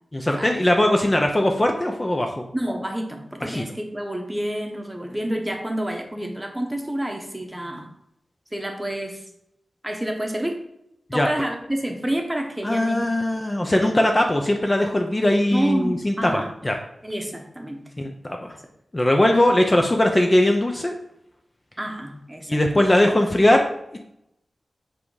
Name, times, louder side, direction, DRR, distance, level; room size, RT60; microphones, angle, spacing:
voice 1, 0.1-2.4 3.5-3.6 11.1-11.3 12.6-16.8 18.0-18.6 18.9-20.9 22.5-23.7 23.9-24.0, left 1 dB, 20° left, 3 dB, 0.6 m, -20 dB
voice 2, 2.5-7.9 8.5-9.2 9.8-10.6 11.1-13.1 13.6-13.8 15.5-16.5 17.0-17.8 21.8-22.8, right 1 dB, 10° right, 3 dB, 1.0 m, -29 dB
7.6 x 3.5 x 4.9 m, 0.78 s
wide cardioid pair, 125°, 0 cm